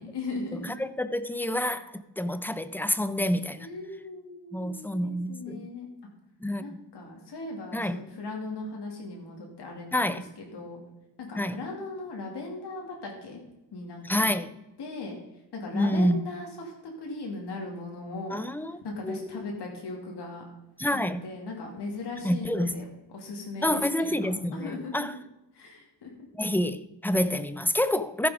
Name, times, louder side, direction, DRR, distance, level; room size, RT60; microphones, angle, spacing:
voice 1, 0.0-0.9 3.6-5.9 6.6-10.8 11.2-13.4 13.7-14.3 14.8-15.2 15.5-20.4 20.9-25.1 25.5-26.1 28.2-28.3, left 2 dB, 70° left, 2.6 m, -38 dB
voice 2, 0.6-3.7 4.5-5.6 6.4-6.6 7.7-8.0 9.9-10.2 11.4-11.6 14.0-14.5 15.7-16.2 18.3-18.8 19.0-19.4 20.8-21.2 22.2-22.7 23.6-25.1 26.3-28.3, left 1 dB, 5° left, 0.6 m, -28 dB
14.5 x 7.0 x 5.0 m
cardioid pair, 105°, 42 cm